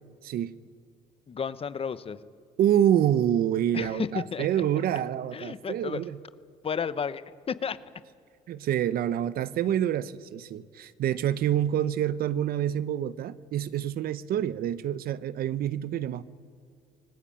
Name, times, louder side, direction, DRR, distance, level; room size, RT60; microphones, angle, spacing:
voice 1, 0.2-0.6 2.6-6.1 8.5-16.2, right 10 dB, 65° right, 16 dB, 0.8 m, -27 dB
voice 2, 1.3-2.2 3.7-4.5 5.3-6.0 6.6-7.8, left 6 dB, 35° left, 14 dB, 1.0 m, -32 dB
24.5 x 19.5 x 8.8 m, 2.5 s
cardioid pair, 110°, 17 cm